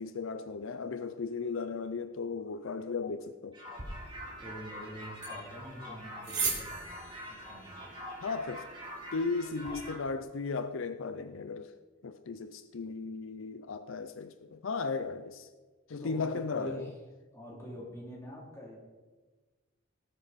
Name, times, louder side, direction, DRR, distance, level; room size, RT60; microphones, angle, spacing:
voice 1, 0.0-3.6 8.2-8.7 9.1-11.7 12.0-15.5 15.9-16.9, left 4 dB, 70° left, 0.5 m, -36 dB
sound 1, 3.5-10.0, equal, 25° right, 2.9 m, -45 dB
sound 2, 3.7-9.8, right 4 dB, 60° right, 3.2 m, -41 dB
voice 2, 4.0-8.0 16.0-16.9 17.3-18.8, equal, 15° left, 3.1 m, -46 dB
18.0 x 7.9 x 4.1 m
head